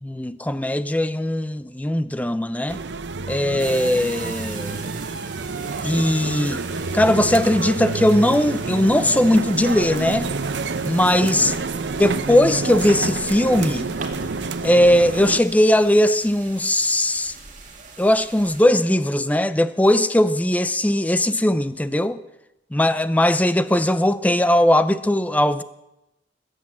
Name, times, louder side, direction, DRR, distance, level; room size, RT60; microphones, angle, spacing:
voice 1, 0.0-2.8 3.3-4.9 5.8-6.6 6.9-10.3 10.8-11.5 12.0-13.9 14.6-17.3 18.0-22.2 22.7-25.6, left 1 dB, 10° left, 0.5 m, -19 dB
sound 1, 2.7-15.4, right 3 dB, 70° right, 0.7 m, -28 dB
sound 2, 3.6-18.7, right 5 dB, 45° right, 2.3 m, -41 dB
20.5 x 8.1 x 7.5 m
head